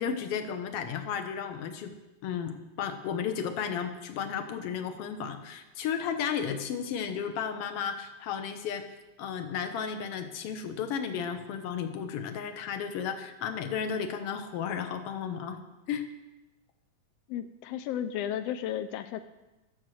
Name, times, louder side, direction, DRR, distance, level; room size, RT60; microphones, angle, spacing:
voice 1, 0.0-1.9 2.2-8.8 9.2-15.6 15.9-16.1, left 7 dB, 65° left, 7 dB, 1.7 m, -33 dB
voice 2, 17.3-19.2, left 10 dB, 85° left, 9 dB, 1.4 m, -33 dB
13.0 x 6.9 x 7.6 m, 1.1 s
omnidirectional pair, 3.4 m